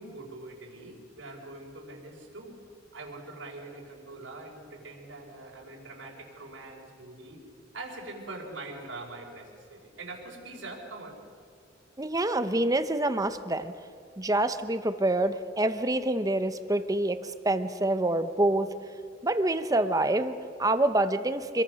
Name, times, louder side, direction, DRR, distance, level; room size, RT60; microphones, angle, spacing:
voice 1, 0.0-2.6 2.9-7.4 7.7-11.2, right 2 dB, 90° right, -3 dB, 5.1 m, -43 dB
voice 2, 12.0-13.7 14.2-18.8 19.2-21.6, right 1 dB, 20° right, 10 dB, 0.9 m, -26 dB
26.5 x 22.0 x 6.4 m, 2.4 s
head